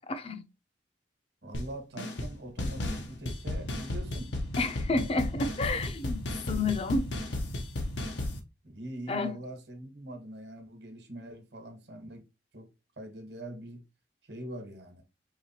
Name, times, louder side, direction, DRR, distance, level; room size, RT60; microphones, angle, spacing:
voice 1, 0.1-0.4 4.6-6.2 6.5-7.1 9.1-9.4, left 3 dB, 30° left, 0.5 m, -30 dB
voice 2, 1.4-4.3 8.6-12.3 12.5-12.7 13.0-13.8 14.2-15.0, right 1 dB, 70° right, 1.3 m, -43 dB
sound 1, 1.5-1.7 2.0-2.3 2.6-8.4, left 1 dB, 85° left, 1.0 m, -34 dB
4.8 x 3.1 x 2.8 m
head